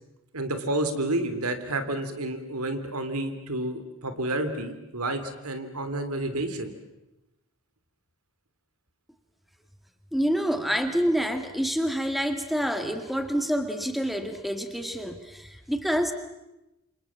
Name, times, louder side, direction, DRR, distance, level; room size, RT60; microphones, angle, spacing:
voice 1, 0.3-6.7, right 1 dB, 90° right, 9 dB, 3.2 m, -30 dB
voice 2, 10.1-16.1, equal, ahead, 7 dB, 2.1 m, -27 dB
28.0 x 27.0 x 7.6 m, 0.95 s
head